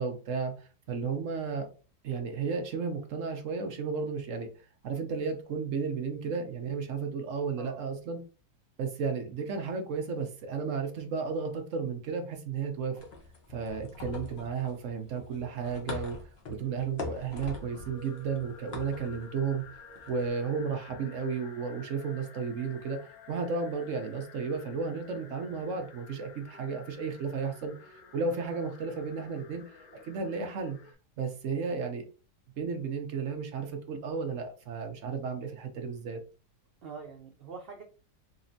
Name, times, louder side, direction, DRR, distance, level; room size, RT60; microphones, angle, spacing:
voice 1, 0.0-1.7 2.0-4.5 4.8-8.2 8.8-13.0 13.5-19.6 20.1-23.0 23.3-29.6 30.0-30.8 31.2-32.1 32.6-36.2, right 5 dB, 60° right, 4 dB, 0.9 m, -33 dB
voice 2, 7.6-7.9 36.8-37.8, right 5 dB, 85° right, 3 dB, 0.5 m, -44 dB
sound 1, 12.9-20.3, left 3 dB, 45° left, 1.0 m, -43 dB
sound 2, 17.6-30.9, left 4 dB, 65° left, 1.2 m, -52 dB
4.2 x 2.9 x 2.6 m, 0.34 s
omnidirectional pair, 1.8 m